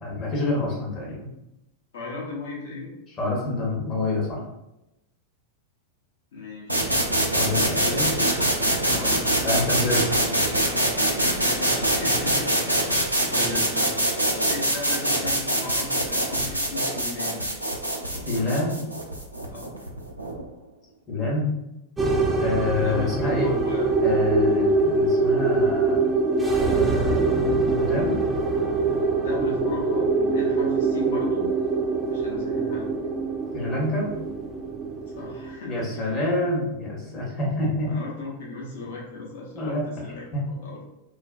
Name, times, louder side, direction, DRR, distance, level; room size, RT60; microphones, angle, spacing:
voice 1, 0.0-1.3 3.2-4.4 7.3-8.1 9.4-10.2 18.3-18.8 21.1-21.5 22.4-23.5 24.0-26.0 26.5-28.2 33.5-34.1 35.6-37.9 39.5-39.8 40.3-40.4, left 2 dB, 30° left, -3 dB, 0.9 m, -27 dB
voice 2, 1.9-2.9 6.3-6.9 8.1-8.4 8.9-9.3 11.5-13.0 13.3-17.5 18.1-18.7 19.5-19.8 22.7-23.9 29.2-31.5 32.1-32.9 35.2-36.1 37.9-40.8, left 3 dB, 55° left, -3 dB, 0.8 m, -36 dB
sound 1, 6.7-20.4, right 1 dB, 90° right, 0.4 m, -24 dB
sound 2, 22.0-35.5, right 3 dB, 10° right, 0.4 m, -23 dB
2.4 x 2.2 x 2.3 m, 0.90 s
figure-of-eight pair, 90°, 0 cm